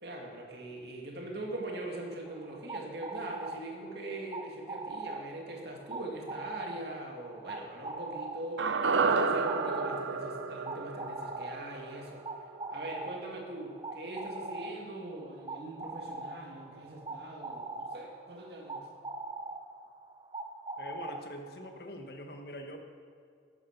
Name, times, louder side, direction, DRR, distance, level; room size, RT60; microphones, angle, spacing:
voice 1, 0.0-12.3 12.7-18.9, right 1 dB, 60° right, 0 dB, 2.2 m, -42 dB
sound 1, 2.3-21.7, right 3 dB, 25° right, 0.6 m, -42 dB
sound 2, 8.6-12.9 13.2-13.3, right 4 dB, 85° right, 0.7 m, -31 dB
voice 2, 20.8-22.8, equal, 55° left, 4 dB, 1.4 m, -44 dB
13.5 x 11.0 x 5.9 m, 2.2 s
head